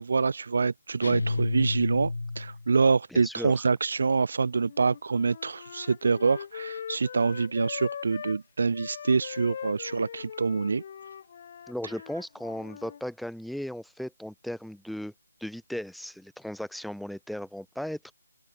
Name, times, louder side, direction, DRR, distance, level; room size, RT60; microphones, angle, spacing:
voice 1, 0.0-10.8, right 4 dB, 55° right, 0.8 m, -26 dB
Dist Chr Arock up pm, 1.0-2.7, left 3 dB, 75° left, 2.4 m, -30 dB
voice 2, 3.1-3.7 11.7-15.1 15.4-18.1, equal, ahead, 1.7 m, -36 dB
Wind instrument woodwind instrument, 4.5-8.4 8.7-13.0, left 8 dB, 35° left, 1.7 m, -41 dB
open air
figure-of-eight pair, 165°, 0 cm